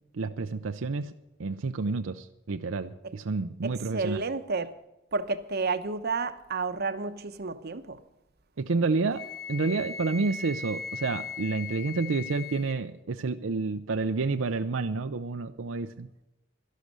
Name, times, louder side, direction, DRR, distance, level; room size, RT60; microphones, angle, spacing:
voice 1, 0.1-1.1 1.4-4.2 8.6-9.2 9.5-16.1, right 4 dB, 85° right, 8 dB, 0.6 m, -29 dB
voice 2, 3.6-4.7 5.1-8.0, right 4 dB, 55° right, 11 dB, 0.9 m, -31 dB
Wind instrument woodwind instrument, 9.1-12.8, left 5 dB, 55° left, 1.2 m, -39 dB
12.5 x 11.5 x 6.6 m, 0.91 s
head